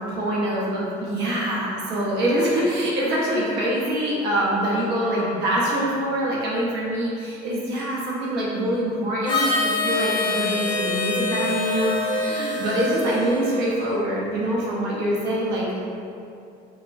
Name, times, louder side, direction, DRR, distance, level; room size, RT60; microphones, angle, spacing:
voice 1, 0.2-15.9, right 1 dB, 85° right, -5 dB, 0.6 m, -24 dB
Harmonica, 9.2-14.0, left 3 dB, 25° left, 0.5 m, -26 dB
3.4 x 2.0 x 2.3 m, 2.6 s
cardioid pair, 110°, 17 cm